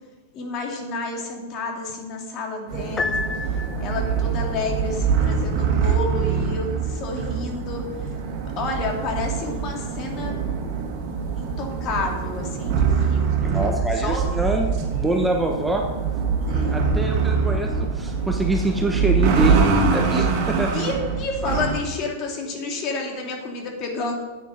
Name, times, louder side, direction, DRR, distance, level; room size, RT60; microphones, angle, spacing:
voice 1, 0.3-3.2 3.8-7.9 8.6-10.4 11.4-13.7 14.0-14.3 16.4-16.8 20.1-20.3 20.7-24.1, left 3 dB, 40° left, 1 dB, 2.5 m, -30 dB
sound 1, 2.7-21.8, right 5 dB, 50° right, 2.1 m, -24 dB
Piano, 3.0-4.2, left 4 dB, 20° left, 0.5 m, -29 dB
voice 2, 13.4-15.9 16.7-19.6 19.9-20.7, right 2 dB, 5° right, 1 dB, 1.1 m, -25 dB
9.1 x 8.7 x 5.2 m, 1.2 s
hypercardioid pair, 105°, 0 cm